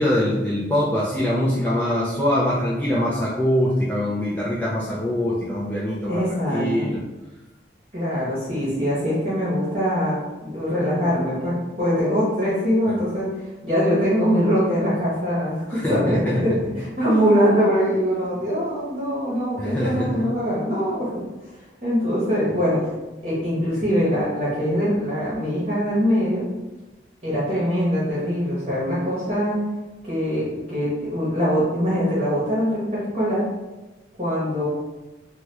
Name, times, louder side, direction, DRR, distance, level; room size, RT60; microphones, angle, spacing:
voice 1, 0.0-6.2 6.5-7.0 15.7-16.6 19.6-20.3, left 1 dB, 10° left, -7 dB, 0.3 m, -23 dB
voice 2, 6.1-6.9 7.9-10.2 10.4-13.3 13.6-16.5 16.8-21.1 21.8-22.9 23.2-26.4 27.2-29.6 30.0-33.4 34.2-34.7, equal, 35° right, -9 dB, 0.9 m, -22 dB
2.8 x 2.2 x 3.2 m, 1.1 s
head